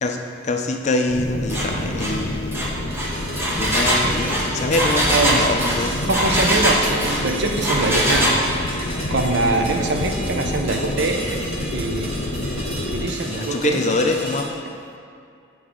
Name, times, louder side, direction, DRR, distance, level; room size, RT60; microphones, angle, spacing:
voice 1, 0.0-2.6 3.6-6.0 13.2-14.6, left 2 dB, 35° left, 4 dB, 0.4 m, -24 dB
sound 1, 1.1-13.1, left 1 dB, 80° left, 0.6 m, -28 dB
Engine, 1.5-1.7 2.0-2.2 2.5-7.2 7.6-8.4, right 1 dB, 10° right, 0.8 m, -21 dB
sound 2, 1.7-14.4, equal, 30° right, 1.4 m, -34 dB
voice 2, 5.1-5.5 6.1-8.4 9.1-11.4 11.7-12.1 12.9-13.8, right 2 dB, 60° right, 3 dB, 0.6 m, -23 dB
8.1 x 4.7 x 3.7 m, 2.5 s
head